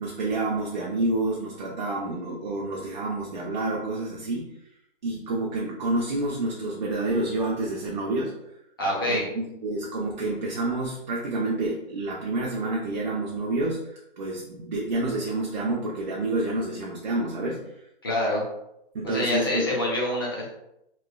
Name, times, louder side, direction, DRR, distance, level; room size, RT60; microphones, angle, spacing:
voice 1, 0.0-4.5 5.0-8.3 9.1-17.6 18.9-19.7, right 2 dB, 50° right, -3 dB, 0.4 m, -28 dB
voice 2, 8.8-9.2 18.0-18.4 19.0-20.5, left 1 dB, 25° left, -5 dB, 0.5 m, -26 dB
3.0 x 2.1 x 2.2 m, 0.82 s
hypercardioid pair, 180°, 30 cm